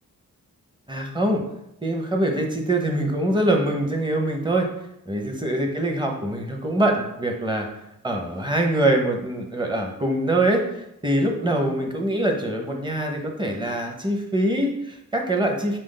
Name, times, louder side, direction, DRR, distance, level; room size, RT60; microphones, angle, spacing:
voice 1, 0.9-1.4 1.8-4.7 5.1-7.7 8.0-15.8, right 1 dB, 15° right, 2 dB, 0.8 m, -24 dB
4.9 x 2.5 x 3.8 m, 0.81 s
cardioid pair, 90°, 34 cm